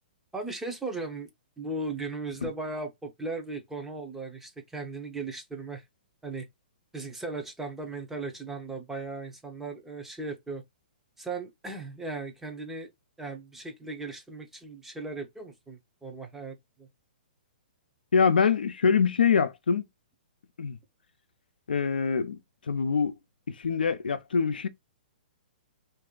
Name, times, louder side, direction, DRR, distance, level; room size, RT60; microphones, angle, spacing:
voice 1, 0.3-1.3 1.6-5.8 6.2-6.5 6.9-10.6 11.2-12.9 13.2-16.9, right 3 dB, 5° right, 0.7 m, -37 dB
voice 2, 18.1-19.8 20.6-20.8 21.7-22.4 22.7-23.1 23.5-24.7, left 6 dB, 90° left, 0.5 m, -24 dB
2.6 x 2.4 x 3.7 m
hypercardioid pair, 140°, 5 cm